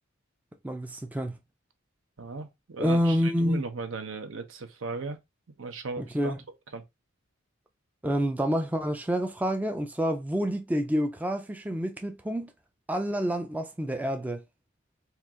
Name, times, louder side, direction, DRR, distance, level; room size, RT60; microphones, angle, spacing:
voice 1, 0.6-1.4 2.8-3.6 6.0-6.4 8.0-12.5 12.9-14.4, equal, 10° right, 0.4 m, -28 dB
voice 2, 2.2-5.2 5.6-6.3 6.7-6.8, right 3 dB, 70° right, 0.8 m, -36 dB
4.4 x 2.4 x 3.6 m
head